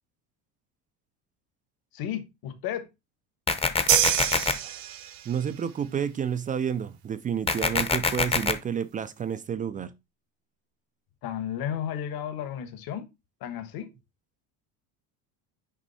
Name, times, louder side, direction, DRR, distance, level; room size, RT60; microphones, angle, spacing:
voice 1, 1.9-2.9 11.2-13.1 13.4-13.9, left 10 dB, 50° left, 1.4 m, -33 dB
sound 1, 3.5-4.5 7.5-8.5, left 4 dB, 15° left, 0.7 m, -24 dB
sound 2, 3.9-5.4, right 13 dB, 50° right, 0.9 m, -26 dB
voice 2, 5.3-9.9, right 8 dB, 20° right, 0.3 m, -30 dB
6.3 x 5.4 x 4.1 m
supercardioid pair, 125°, 45 cm